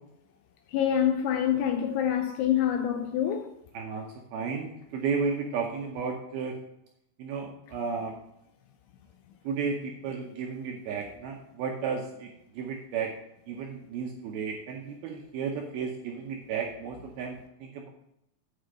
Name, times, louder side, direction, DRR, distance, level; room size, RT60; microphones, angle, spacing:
voice 1, 0.7-3.5, left 9 dB, 80° left, 2.5 m, -26 dB
voice 2, 3.7-6.6 7.2-8.2 9.4-13.1 13.5-17.9, right 5 dB, 75° right, 2.3 m, -33 dB
8.7 x 5.1 x 6.4 m
omnidirectional pair, 5.2 m